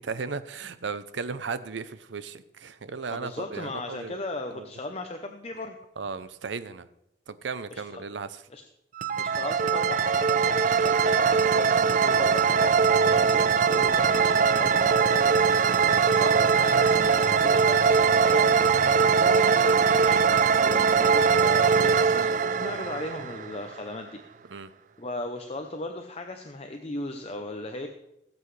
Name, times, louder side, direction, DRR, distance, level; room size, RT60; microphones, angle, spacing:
voice 1, 0.0-4.2 4.5-4.7 6.0-6.9 7.3-8.4 13.0-13.2 15.7-15.9 24.5-24.7, right 5 dB, 85° right, 13 dB, 0.6 m, -36 dB
voice 2, 3.1-5.8 7.7-8.0 8.5-8.6 9.2-15.2 15.6-24.2 25.0-27.9, left 2 dB, 35° left, 5 dB, 0.7 m, -37 dB
sound 1, 9.0-23.8, right 6 dB, 45° right, 0.4 m, -21 dB
17.5 x 7.9 x 3.3 m, 0.84 s
head